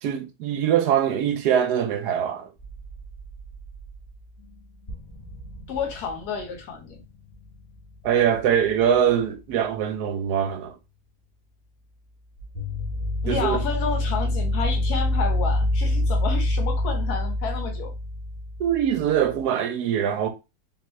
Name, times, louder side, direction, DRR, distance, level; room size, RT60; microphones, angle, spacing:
voice 1, 0.0-2.5 8.0-10.7 13.3-13.6 18.6-20.3, right 9 dB, 80° right, 1.2 m, -23 dB
sound 1, 2.6-4.1 4.4-4.5 4.9-9.2 12.4-19.4, left 1 dB, 30° left, 1.5 m, -27 dB
voice 2, 5.7-7.0 13.2-17.9, left 5 dB, 75° left, 1.5 m, -30 dB
3.6 x 3.1 x 3.1 m
omnidirectional pair, 1.7 m